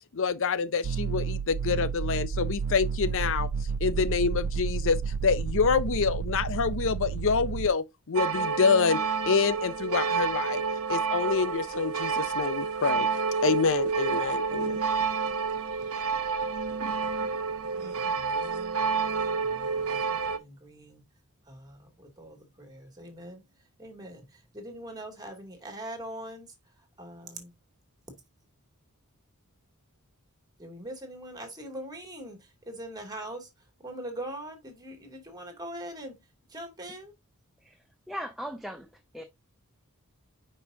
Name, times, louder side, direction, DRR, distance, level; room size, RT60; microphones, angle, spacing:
voice 1, 0.1-3.5 3.8-9.0 9.3-10.6 10.9-13.1 13.4-14.8, left 5 dB, 60° left, 0.6 m, -27 dB
sound 1, 0.8-7.7, right 6 dB, 90° right, 0.4 m, -31 dB
sound 2, 8.2-20.4, right 5 dB, 70° right, 0.9 m, -29 dB
voice 2, 17.8-21.0 21.5-26.5 27.0-27.5 30.6-33.5 33.8-36.2 36.5-37.1, right 1 dB, 15° right, 2.7 m, -42 dB
voice 3, 38.1-39.2, equal, ahead, 0.8 m, -38 dB
9.6 x 5.5 x 2.8 m
head